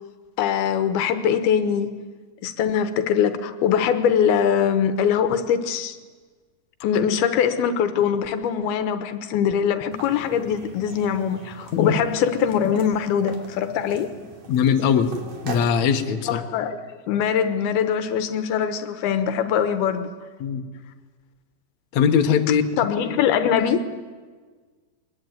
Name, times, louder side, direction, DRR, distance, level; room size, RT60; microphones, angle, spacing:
voice 1, 0.4-1.9 2.4-6.0 6.8-14.1 16.3-20.1 22.8-23.9, left 8 dB, 80° left, 10 dB, 2.9 m, -22 dB
sound 1, 9.9-15.8, right 3 dB, 50° right, 3.7 m, -41 dB
voice 2, 14.5-15.1 15.4-16.4 20.4-20.6 21.9-22.6, left 7 dB, 60° left, 4 dB, 2.2 m, -20 dB
22.0 x 20.5 x 9.4 m, 1.5 s
omnidirectional pair, 4.4 m